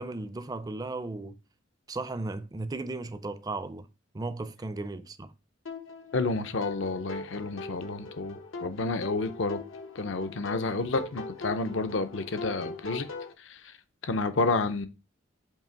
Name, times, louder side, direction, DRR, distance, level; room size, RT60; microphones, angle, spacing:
voice 1, 0.0-1.4 1.9-3.9 4.1-5.3, right 2 dB, 20° right, 0.4 m, -35 dB
sound 1, 5.7-13.3, left 3 dB, 85° left, 1.0 m, -41 dB
voice 2, 6.1-9.6 9.9-13.1 13.4-13.7 14.0-14.9, left 3 dB, 65° left, 0.6 m, -30 dB
7.5 x 2.8 x 4.5 m
head